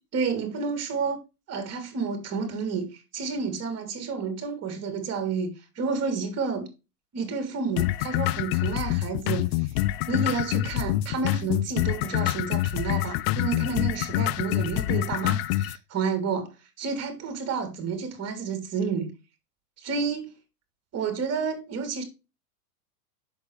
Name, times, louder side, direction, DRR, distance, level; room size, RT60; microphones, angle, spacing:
voice 1, 0.1-1.2 1.5-2.9 3.1-6.7 7.1-9.7 10.1-16.5 16.8-19.1 19.8-20.3 20.9-22.0, right 5 dB, 30° right, 3.3 m, -30 dB
sound 1, 7.8-15.8, left 15 dB, 40° left, 0.4 m, -26 dB
8.0 x 6.8 x 3.2 m
hypercardioid pair, 105°, 48 cm